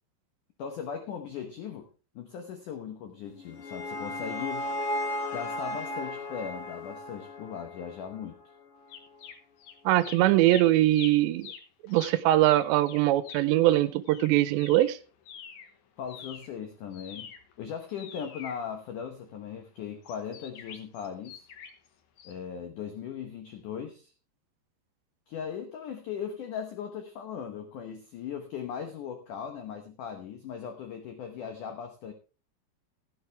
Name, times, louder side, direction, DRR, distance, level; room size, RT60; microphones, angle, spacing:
voice 1, 0.6-1.9 2.2-4.7 5.3-8.4 16.0-17.3 17.6-21.4 22.2-24.1 25.3-32.1, left 7 dB, 90° left, 6 dB, 1.8 m, -38 dB
sound 1, 3.2-8.4, left 1 dB, 50° left, 3.1 m, -35 dB
sound 2, 8.9-9.7 10.0-15.7 16.0-19.3 20.0-21.9 22.2-22.3, left 7 dB, 70° left, 1.8 m, -46 dB
voice 2, 9.9-11.5 11.8-15.0, right 15 dB, 80° right, 15 dB, 2.8 m, -22 dB
15.5 x 9.6 x 3.3 m, 0.34 s
omnidirectional pair, 5.3 m